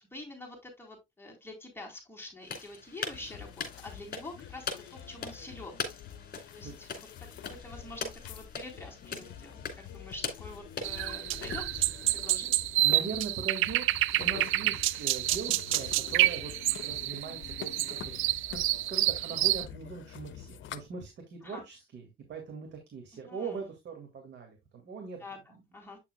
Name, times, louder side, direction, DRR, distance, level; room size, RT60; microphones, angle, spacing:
voice 1, 0.0-5.8 6.5-6.9 7.5-12.5 21.4-21.6 23.2-23.6 25.2-26.0, left 2 dB, 10° left, 4.0 m, -46 dB
sound 1, 2.4-12.2, left 5 dB, 50° left, 2.8 m, -42 dB
sound 2, 3.1-20.8, left 9 dB, 70° left, 0.8 m, -47 dB
sound 3, 10.8-19.6, right 16 dB, 90° right, 0.4 m, -28 dB
voice 2, 12.8-16.5 16.8-18.1 18.5-25.6, right 5 dB, 65° right, 2.2 m, -41 dB
8.7 x 6.7 x 2.3 m
cardioid pair, 90°, 20 cm